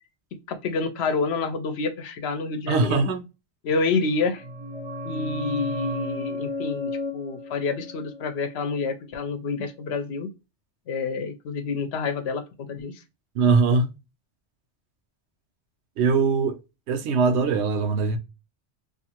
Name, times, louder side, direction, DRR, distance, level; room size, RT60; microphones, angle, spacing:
voice 1, 0.5-3.0 3.6-4.4 5.0-10.3 10.9-13.0, left 4 dB, 70° left, 0.8 m, -28 dB
voice 2, 2.7-3.2 13.3-13.9 16.0-16.6 16.9-18.2, right 4 dB, 75° right, 0.9 m, -21 dB
sound 1, 4.0-9.5 9.7-9.8, left 2 dB, 45° right, 0.6 m, -34 dB
2.5 x 2.5 x 2.8 m
omnidirectional pair, 1.1 m